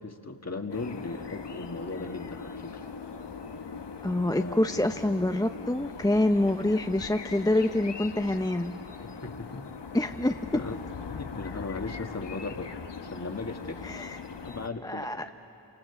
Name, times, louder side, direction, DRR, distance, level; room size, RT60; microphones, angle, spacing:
voice 1, 0.0-2.8 4.2-4.6 9.0-9.7 10.5-10.8 11.1-12.7 13.1-13.9 14.4-15.2, left 3 dB, 35° left, 5 dB, 1.8 m, -37 dB
sound 1, 0.7-14.7, left 5 dB, 65° left, 1.2 m, -41 dB
voice 2, 4.0-8.8 9.9-10.4 13.8-14.2 14.8-15.3, left 1 dB, 10° left, 6 dB, 0.6 m, -26 dB
28.5 x 25.5 x 6.9 m, 3.0 s
cardioid pair, 40°, 45 cm